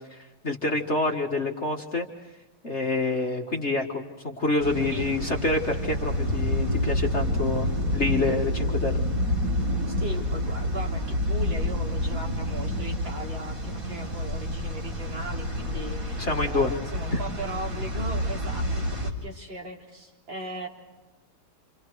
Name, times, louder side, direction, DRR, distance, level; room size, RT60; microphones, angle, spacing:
voice 1, 0.1-2.1 2.6-9.0 16.2-16.7 17.1-17.2, left 2 dB, 35° left, 1 dB, 1.9 m, -27 dB
sound 1, 4.6-19.1, left 1 dB, 40° right, 4.4 m, -28 dB
voice 2, 10.0-20.7, right 1 dB, 60° right, -2 dB, 4.6 m, -38 dB
29.0 x 28.0 x 4.8 m, 1.1 s
omnidirectional pair, 2.3 m